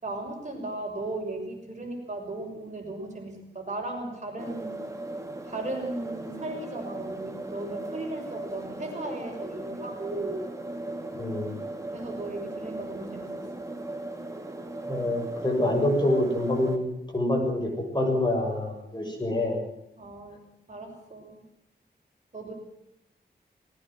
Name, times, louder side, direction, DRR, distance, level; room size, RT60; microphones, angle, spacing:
voice 1, 0.0-4.8 5.4-10.4 11.9-13.5 20.0-20.4 20.7-21.4 22.3-22.5, right 2 dB, 40° right, 1 dB, 6.5 m, -36 dB
sound 1, 4.4-16.8, right 2 dB, 15° right, 3.1 m, -38 dB
voice 2, 11.1-11.5 14.9-16.9 17.1-19.6, left 1 dB, 25° left, 1 dB, 7.2 m, -26 dB
20.0 x 18.5 x 7.7 m, 0.82 s
wide cardioid pair, 110°, 18 cm